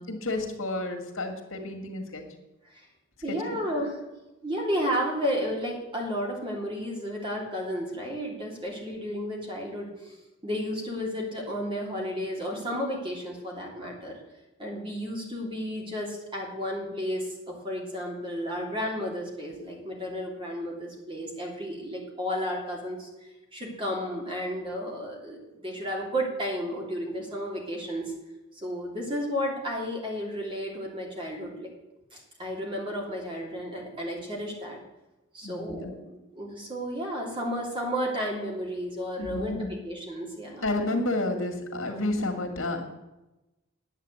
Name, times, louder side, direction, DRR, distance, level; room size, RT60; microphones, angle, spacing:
voice 1, 0.0-2.2 3.3-3.6 35.4-35.9 39.2-39.7 40.6-42.8, left 2 dB, 85° left, 4 dB, 2.1 m, -31 dB
voice 2, 3.2-4.0 4.4-14.1 14.6-23.1 23.5-25.4 25.6-28.1 28.5-31.7 32.1-34.8 35.3-40.7, equal, 25° right, -1 dB, 3.1 m, -32 dB
10.5 x 8.2 x 8.1 m, 1.0 s
head